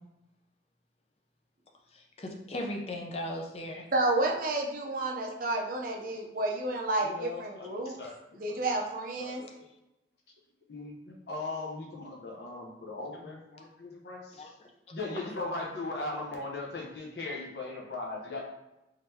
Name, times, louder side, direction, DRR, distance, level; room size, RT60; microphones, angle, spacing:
voice 1, 1.9-3.9 14.4-14.5, left 1 dB, 30° left, 1 dB, 0.5 m, -37 dB
voice 2, 3.9-8.0 8.4-9.4, right 2 dB, 45° right, 0 dB, 0.6 m, -30 dB
voice 3, 7.1-7.7 8.0-8.4 9.2-9.5 10.7-14.5 14.9-18.4, left 2 dB, 60° left, -1 dB, 0.8 m, -38 dB
3.8 x 3.3 x 2.8 m, 0.96 s
head